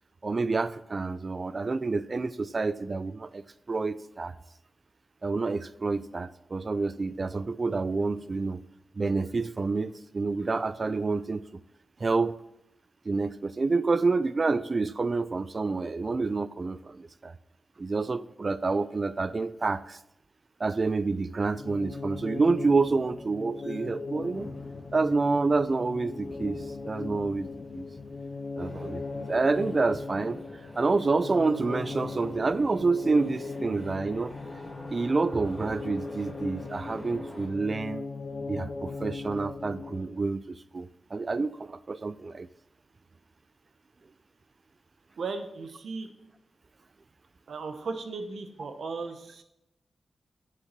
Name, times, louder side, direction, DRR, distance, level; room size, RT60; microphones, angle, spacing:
voice 1, 0.2-3.4 3.7-4.3 5.2-8.6 9.0-11.5 12.0-12.3 13.1-17.3 17.8-20.0 20.6-24.5 24.9-27.5 27.7-27.8 28.6-29.0 29.3-30.4 30.8-34.3 34.9-38.1 38.5-42.5, right 3 dB, 40° right, 16 dB, 0.4 m, -28 dB
sound 1, 21.5-40.3, left 4 dB, 50° left, 0.6 m, -39 dB
Thunder, 24.2-30.0, left 1 dB, 20° left, 2.2 m, -52 dB
sound 2, 28.6-37.5, equal, 5° left, 3.2 m, -46 dB
voice 2, 45.2-46.1 47.5-49.4, right 4 dB, 80° right, 7 dB, 1.0 m, -36 dB
7.4 x 6.7 x 5.9 m, 0.87 s
wide cardioid pair, 115°, 0 cm